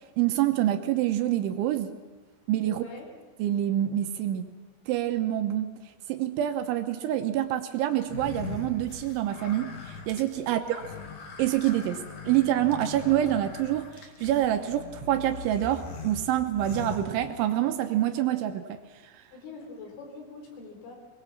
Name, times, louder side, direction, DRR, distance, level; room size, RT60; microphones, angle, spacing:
voice 1, 0.2-1.9 2.5-2.8 3.4-4.5 4.9-5.7 6.1-10.6 11.4-18.8, right 12 dB, 75° right, 7 dB, 3.1 m, -26 dB
voice 2, 2.7-3.1 10.4-10.7 19.3-20.9, left 4 dB, 70° left, 2 dB, 6.6 m, -44 dB
sound 1, 8.0-17.7, left 4 dB, 50° left, 2.2 m, -41 dB
23.0 x 21.5 x 7.3 m, 1.3 s
omnidirectional pair, 5.9 m